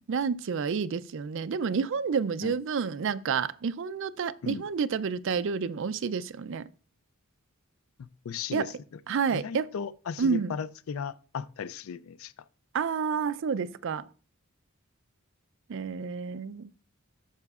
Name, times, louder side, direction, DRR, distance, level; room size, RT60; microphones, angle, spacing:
voice 1, 0.1-6.7 8.5-8.7 9.1-9.7 10.2-10.5 12.7-14.1 15.7-16.7, right 6 dB, 65° right, 0.4 m, -29 dB
voice 2, 8.0-8.7 9.3-12.3, left 7 dB, 80° left, 0.4 m, -36 dB
12.0 x 5.7 x 2.4 m
head